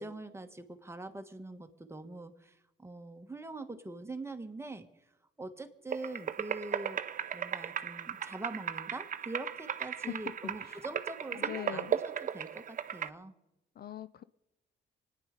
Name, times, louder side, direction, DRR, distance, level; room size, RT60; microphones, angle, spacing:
voice 1, 0.0-4.9 5.4-7.0 7.3-13.3, right 2 dB, 15° right, 7 dB, 1.4 m, -43 dB
sound 1, 5.9-13.1, right 8 dB, 40° right, 0.6 m, -36 dB
voice 2, 11.3-11.9 13.8-14.2, left 10 dB, 50° left, 15 dB, 0.6 m, -42 dB
25.0 x 9.9 x 5.2 m, 0.93 s
cardioid pair, 90°, 20 cm